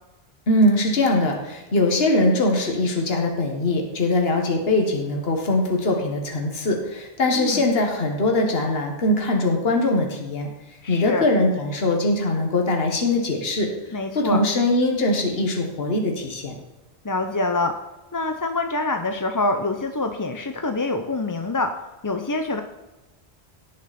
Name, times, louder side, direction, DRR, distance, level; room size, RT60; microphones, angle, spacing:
voice 1, 0.5-10.5 10.9-13.7 14.2-16.5, left 2 dB, 60° left, 2 dB, 1.8 m, -22 dB
voice 2, 10.8-11.3 13.9-14.4 17.0-17.8 18.1-21.7 22.0-22.6, left 2 dB, 25° left, 6 dB, 0.5 m, -25 dB
18.0 x 6.3 x 4.3 m, 1.1 s
omnidirectional pair, 1.1 m